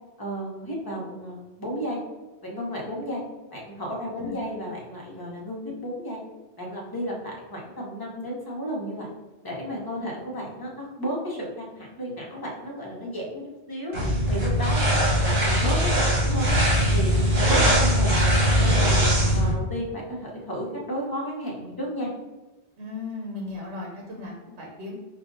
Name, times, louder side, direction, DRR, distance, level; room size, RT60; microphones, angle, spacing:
voice 1, 0.2-2.0 2.4-3.2 3.5-6.2 6.6-9.1 9.4-13.9 14.3-14.9 15.2-16.6 16.9-18.2 18.6-19.0 19.3-22.1, equal, 20° left, -3 dB, 0.8 m, -33 dB
sound 1, 13.9-19.5, equal, 65° right, 1.5 m, -21 dB
voice 2, 22.8-24.9, left 3 dB, 85° right, -2 dB, 1.0 m, -36 dB
5.0 x 2.4 x 2.6 m, 1.1 s
omnidirectional pair, 1.1 m